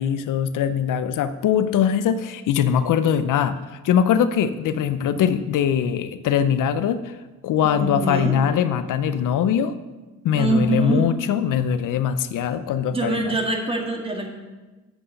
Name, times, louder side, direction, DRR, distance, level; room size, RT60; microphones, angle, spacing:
voice 1, 0.0-3.6 3.8-7.2 7.4-9.7 10.2-13.3, left 8 dB, 75° left, 12 dB, 0.6 m, -22 dB
voice 2, 7.6-8.3 10.3-11.1 12.9-14.3, right 2 dB, 15° right, 1 dB, 1.7 m, -24 dB
7.8 x 6.1 x 6.5 m, 1.2 s
cardioid pair, 105°, 32 cm